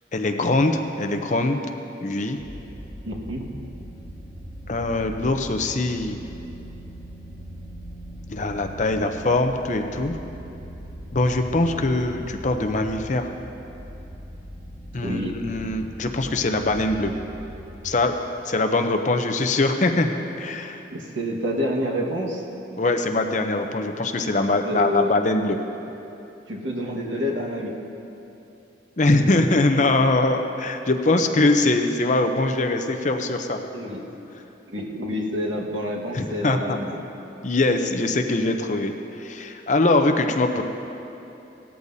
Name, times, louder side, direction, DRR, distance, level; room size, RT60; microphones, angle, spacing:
voice 1, 0.1-1.6 2.0-2.4 4.7-6.2 8.3-10.2 11.1-13.3 14.9-17.1 17.8-18.1 18.4-20.8 22.8-25.6 29.0-33.6 36.1-36.8 37.4-40.6, left 2 dB, 40° left, 5 dB, 0.6 m, -22 dB
sound 1, 2.4-17.8, equal, ahead, 1.5 m, -40 dB
voice 2, 3.0-3.5 15.0-15.4 20.9-22.4 24.6-25.2 26.5-27.8 33.7-34.0 34.7-37.0, equal, 80° right, -1 dB, 1.6 m, -28 dB
17.5 x 13.5 x 2.7 m, 2.9 s
head